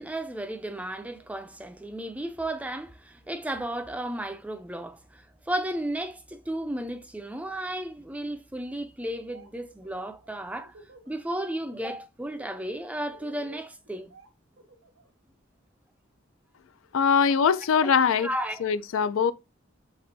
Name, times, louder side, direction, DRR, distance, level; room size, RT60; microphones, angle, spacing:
voice 1, 0.0-10.7 11.1-14.1 17.8-17.9 18.2-18.6, right 1 dB, 5° right, 0.4 m, -34 dB
Laughter, 9.1-9.5 9.8-11.2 11.5-11.9 12.2-15.1, right 2 dB, 85° right, 1.2 m, -52 dB
voice 2, 16.9-18.3 18.6-19.3, left 6 dB, 80° left, 0.4 m, -22 dB
6.0 x 3.2 x 2.6 m
head